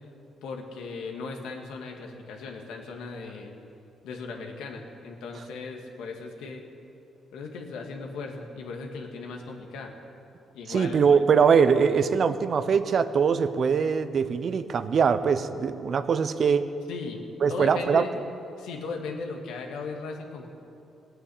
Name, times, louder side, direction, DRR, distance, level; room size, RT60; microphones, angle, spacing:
voice 1, 0.4-3.5 4.0-6.7 7.3-9.9 10.5-11.1 16.9-17.2 17.5-18.1 18.6-20.5, left 4 dB, 90° left, 2 dB, 2.0 m, -37 dB
voice 2, 10.7-16.7 17.4-18.1, right 6 dB, 55° right, 12 dB, 0.8 m, -22 dB
17.0 x 9.1 x 8.7 m, 2.7 s
cardioid pair, 90°, 0 cm